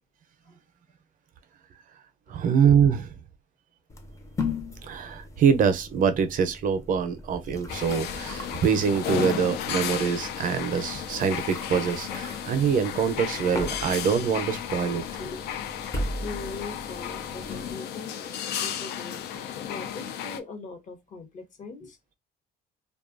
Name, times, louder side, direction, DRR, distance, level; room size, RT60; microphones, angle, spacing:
voice 1, 2.3-3.1 4.8-15.0, right 7 dB, 55° right, 0.5 m, -24 dB
sound 1, 3.9-17.7, left 2 dB, 20° left, 0.5 m, -38 dB
sound 2, 7.7-20.4, left 9 dB, 75° left, 0.4 m, -34 dB
voice 2, 16.1-22.0, left 4 dB, 50° left, 0.8 m, -41 dB
2.6 x 2.2 x 2.4 m
cardioid pair, 110°, 17 cm